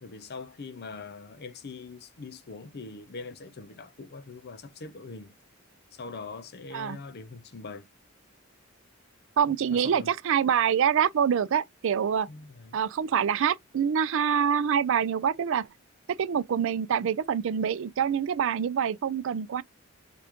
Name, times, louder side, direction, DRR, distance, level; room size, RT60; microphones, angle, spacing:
voice 1, 0.0-5.3 5.9-7.9 9.7-10.1 12.3-12.8, left 4 dB, 50° left, 0.6 m, -42 dB
voice 2, 9.4-12.3 12.7-15.7 16.1-19.6, right 8 dB, 65° right, 0.4 m, -26 dB
3.5 x 2.4 x 2.8 m
head